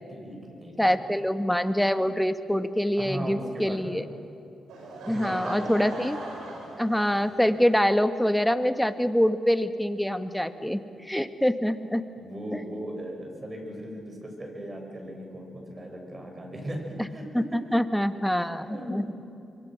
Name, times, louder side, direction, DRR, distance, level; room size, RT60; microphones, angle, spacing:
voice 1, 0.1-1.0 3.0-4.0 5.1-5.7 12.2-17.4 18.4-19.1, equal, 35° right, 2 dB, 6.8 m, -38 dB
voice 2, 0.8-4.0 5.1-6.2 6.8-12.0 12.5-12.6 17.3-19.1, equal, 5° left, 10 dB, 1.4 m, -25 dB
Laughter / Crowd, 4.7-7.5, right 2 dB, 85° right, 5.8 m, -39 dB
26.0 x 23.0 x 6.4 m, 2.8 s
supercardioid pair, 55°, 0 cm